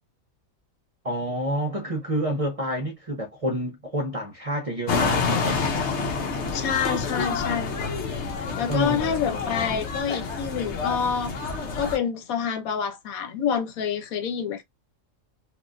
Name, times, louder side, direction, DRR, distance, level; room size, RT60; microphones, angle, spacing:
voice 1, 1.0-5.6 8.7-9.2, equal, 35° right, 0.6 m, -28 dB
sound 1, 4.9-12.0, left 4 dB, 60° left, 1.0 m, -28 dB
voice 2, 6.5-7.8 8.6-11.4 11.8-14.6, left 7 dB, 85° left, 1.2 m, -27 dB
3.4 x 2.5 x 2.5 m
omnidirectional pair, 1.4 m